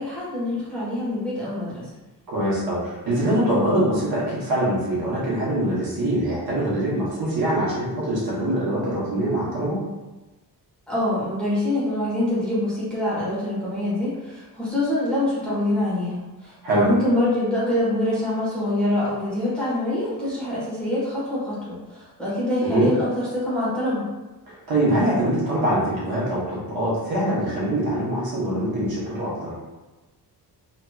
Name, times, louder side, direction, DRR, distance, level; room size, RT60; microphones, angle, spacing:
voice 1, 0.0-1.9 10.9-24.0, left 1 dB, ahead, -11 dB, 1.2 m, -25 dB
voice 2, 2.3-9.8 16.6-16.9 22.6-22.9 24.5-29.5, right 1 dB, 60° right, -7 dB, 1.1 m, -23 dB
3.1 x 2.8 x 2.3 m, 1.1 s
wide cardioid pair, 155°, 40 cm